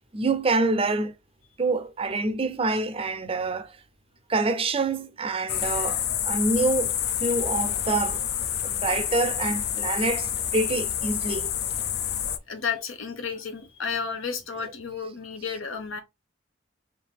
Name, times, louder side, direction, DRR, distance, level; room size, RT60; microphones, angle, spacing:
voice 1, 0.1-1.2 1.6-3.8 4.3-8.2 8.6-11.5, right 3 dB, 30° right, 0.5 m, -26 dB
sound 1, 5.5-12.4, left 10 dB, 55° left, 0.4 m, -28 dB
voice 2, 12.5-16.0, left 6 dB, 80° left, 1.0 m, -32 dB
3.4 x 2.7 x 4.2 m
head